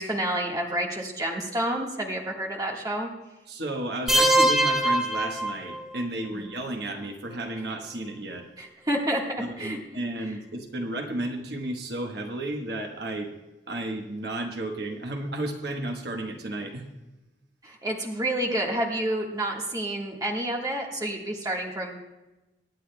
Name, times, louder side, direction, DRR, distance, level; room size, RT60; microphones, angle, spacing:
voice 1, 0.0-3.1 6.3-6.4 8.6-9.2 9.6-9.8 17.6-22.0, right 1 dB, 20° right, -1 dB, 1.4 m, -29 dB
voice 2, 3.5-8.5 9.4-13.3 13.7-16.9, right 1 dB, 55° right, 3 dB, 1.1 m, -33 dB
sound 1, 4.1-6.0, right 1 dB, 5° right, 0.8 m, -22 dB
24.5 x 9.8 x 2.2 m, 1.0 s
head